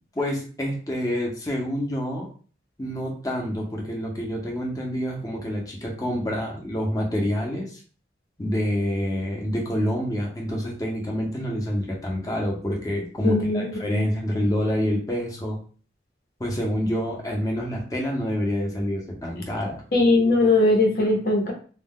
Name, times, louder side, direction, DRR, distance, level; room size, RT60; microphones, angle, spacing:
voice 1, 0.1-2.3 2.8-7.8 8.4-15.6 16.4-19.8, equal, 20° left, -1 dB, 0.7 m, -27 dB
voice 2, 13.2-14.0 19.9-21.5, left 2 dB, 50° left, 1 dB, 0.8 m, -20 dB
2.2 x 2.2 x 3.6 m, 0.41 s
head